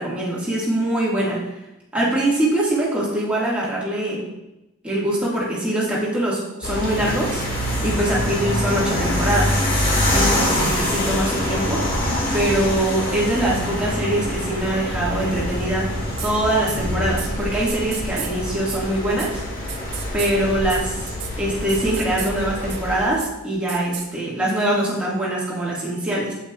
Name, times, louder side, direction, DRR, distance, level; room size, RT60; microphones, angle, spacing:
voice 1, 0.0-1.4 1.9-4.2 4.8-7.4 7.8-9.6 10.1-11.9 12.3-15.9 16.2-19.4 20.1-26.3, right 1 dB, 5° right, -7 dB, 1.8 m, -23 dB
sound 1, 6.6-23.1, left 1 dB, 45° left, 1.9 m, -25 dB
sound 2, 16.2-16.3 16.7-16.8 17.2-17.3 17.7-18.3 18.7-18.8 19.2-19.3 19.7-20.3 20.7-20.8 21.1-21.3 21.7-22.3 22.7-22.8 23.2-23.3 23.7-24.1, right 9 dB, 50° right, 0.6 m, -32 dB
8.4 x 7.9 x 2.4 m, 0.95 s
head